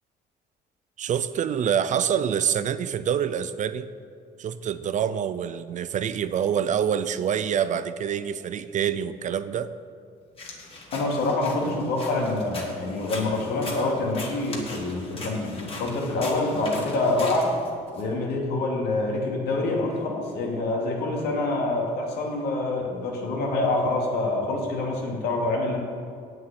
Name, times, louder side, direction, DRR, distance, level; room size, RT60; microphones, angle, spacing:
voice 1, 1.0-3.9 4.4-9.7, right 8 dB, 45° right, 13 dB, 0.6 m, -26 dB
sound 1, 10.4-18.0, left 2 dB, 35° left, 2.4 m, -40 dB
voice 2, 10.9-17.6 18.0-25.8, left 2 dB, 75° left, -1 dB, 2.8 m, -26 dB
8.5 x 7.7 x 8.8 m, 2.3 s
cardioid pair, 110°, 17 cm